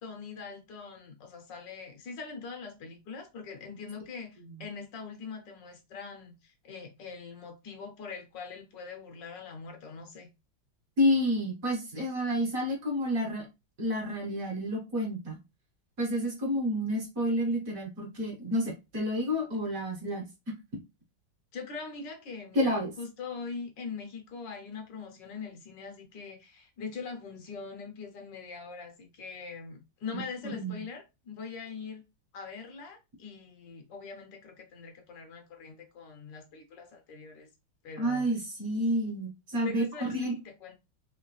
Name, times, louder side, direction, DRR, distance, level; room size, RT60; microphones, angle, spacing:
voice 1, 0.0-10.3 21.5-32.0 32.3-37.5 37.8-38.3 39.6-40.7, left 5 dB, 65° left, 1.4 m, -42 dB
voice 2, 11.0-13.5 13.8-15.4 16.0-20.3 22.5-22.9 30.1-30.8 38.0-40.3, equal, 50° right, 1.5 m, -29 dB
3.7 x 3.1 x 3.1 m
omnidirectional pair, 2.2 m